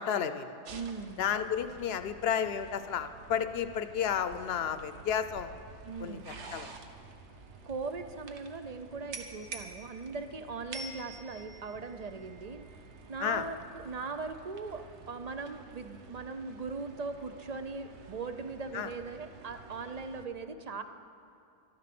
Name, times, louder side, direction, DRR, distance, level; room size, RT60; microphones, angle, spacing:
voice 1, 0.0-0.5 1.2-5.5 6.0-6.2 6.5-6.7 13.2-13.4 18.7-18.9, left 8 dB, 65° left, 11 dB, 0.9 m, -32 dB
sound 1, 0.6-20.3, right 4 dB, 80° right, 1.2 m, -49 dB
voice 2, 0.7-1.2 5.9-6.3 7.7-12.7 13.1-20.8, right 4 dB, 45° right, 9 dB, 0.6 m, -39 dB
13.0 x 12.5 x 6.0 m, 2.6 s
omnidirectional pair, 1.2 m